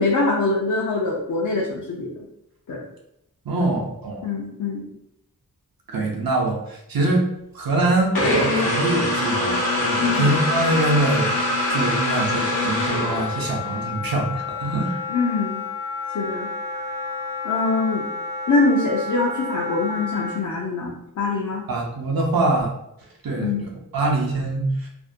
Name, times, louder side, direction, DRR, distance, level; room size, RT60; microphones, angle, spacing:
voice 1, 0.0-2.2 2.7-2.8 3.6-3.7 4.2-4.9 10.0-10.3 15.1-15.6 16.1-16.9 17.4-18.0 18.5-21.6 23.4-23.7, left 3 dB, 55° left, -3 dB, 0.5 m, -24 dB
voice 2, 3.4-4.3 5.9-7.3 7.5-15.0 21.7-22.7 23.2-24.9, right 2 dB, 75° right, 0 dB, 0.7 m, -24 dB
sound 1, 8.1-13.7, left 1 dB, 80° left, 0.8 m, -23 dB
Wind instrument woodwind instrument, 9.2-20.4, left 4 dB, 10° right, 0.3 m, -31 dB
2.5 x 2.1 x 2.5 m, 0.80 s
wide cardioid pair, 90°, 36 cm